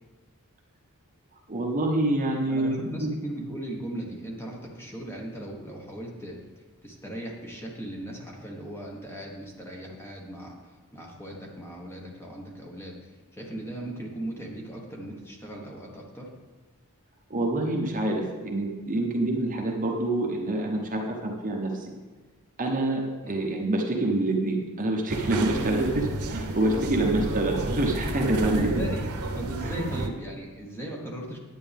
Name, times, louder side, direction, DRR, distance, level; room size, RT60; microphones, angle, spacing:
voice 1, 1.5-3.1 17.3-21.9 22.6-28.8 29.6-29.8, right 1 dB, 35° right, 1 dB, 1.0 m, -26 dB
voice 2, 2.5-6.4 6.8-10.5 10.9-13.0 13.3-16.3 23.2-23.4 28.4-29.0 29.3-31.4, right 1 dB, 10° left, -2 dB, 1.5 m, -38 dB
sound 1, 25.1-30.1, right 2 dB, 80° right, 0.9 m, -31 dB
9.7 x 9.0 x 3.5 m, 1.3 s
head